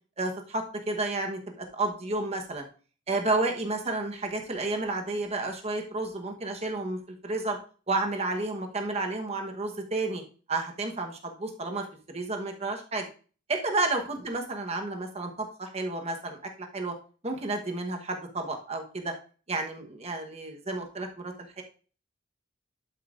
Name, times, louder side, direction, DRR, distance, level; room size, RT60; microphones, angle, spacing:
voice 1, 0.2-2.6 3.1-7.6 7.9-10.2 10.5-13.1 13.5-16.9 17.2-19.1 19.5-21.6, right 2 dB, 35° right, 3 dB, 1.1 m, -31 dB
11.5 x 5.5 x 2.5 m, 0.39 s
head